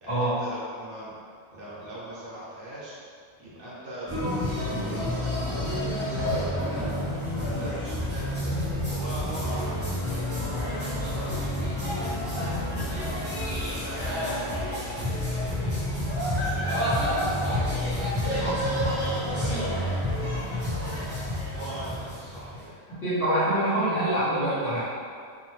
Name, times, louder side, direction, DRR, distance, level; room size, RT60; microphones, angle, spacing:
voice 1, 0.0-1.1 1.5-3.0 3.4-6.9 7.3-8.6 8.9-14.7 15.3-19.6 20.0-21.0 21.5-22.8, right 1 dB, 60° right, -8 dB, 0.8 m, -41 dB
sound 1, 4.1-22.6, left 1 dB, 30° right, 0.8 m, -29 dB
sound 2, 9.3-14.7, left 4 dB, 75° left, 1.1 m, -41 dB
voice 2, 23.0-24.8, right 1 dB, 50° left, -12 dB, 1.2 m, -25 dB
2.8 x 2.0 x 3.0 m, 2.1 s
omnidirectional pair, 1.2 m